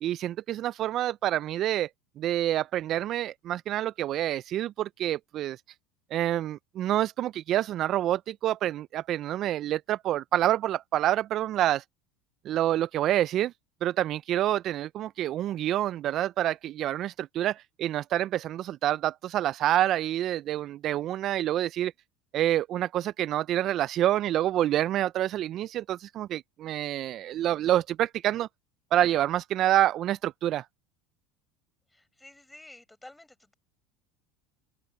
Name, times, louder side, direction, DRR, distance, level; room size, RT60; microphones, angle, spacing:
voice 1, 0.0-1.9 2.2-5.6 6.1-11.8 12.5-13.5 13.8-21.9 22.3-28.5 28.9-30.6, right 12 dB, 50° right, 0.4 m, -27 dB
voice 2, 31.9-33.5, left 2 dB, 10° left, 5.6 m, -51 dB
open air
hypercardioid pair, 95°, 0 cm